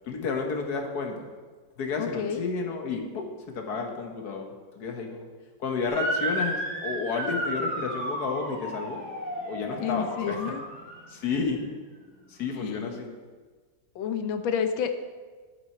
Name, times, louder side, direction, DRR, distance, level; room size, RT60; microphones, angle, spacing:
voice 1, 0.0-1.2 1.8-5.3 5.6-9.0 9.4-10.5 11.1-11.6 12.3-13.1, left 5 dB, 55° left, 3 dB, 1.5 m, -31 dB
voice 2, 2.0-2.4 9.8-10.6 12.6-13.1 13.9-14.9, left 7 dB, 80° left, 8 dB, 1.5 m, -30 dB
Motor vehicle (road) / Siren, 5.9-11.1, right 1 dB, 70° right, 3.7 m, -32 dB
10.0 x 8.0 x 4.4 m, 1.4 s
omnidirectional pair, 2.1 m